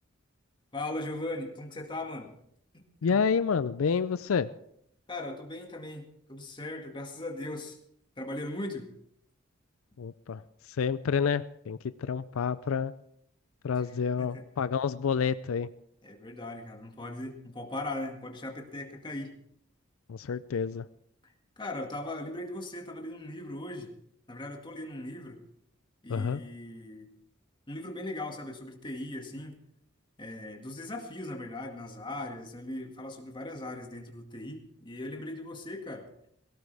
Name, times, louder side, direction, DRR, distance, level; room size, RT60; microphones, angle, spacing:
voice 1, 0.7-2.3 2.7-3.2 5.1-7.8 8.2-8.9 13.7-13.9 14.2-14.4 16.0-19.3 21.2-23.9 24.3-25.4 26.0-27.1 27.7-29.6 30.2-36.1, left 1 dB, 25° left, 2 dB, 2.0 m, -39 dB
voice 2, 3.0-4.5 10.0-10.4 10.7-12.9 13.6-15.7 20.1-20.9 26.1-26.4, left 6 dB, 80° left, 14 dB, 0.4 m, -29 dB
18.0 x 17.0 x 3.4 m, 0.72 s
head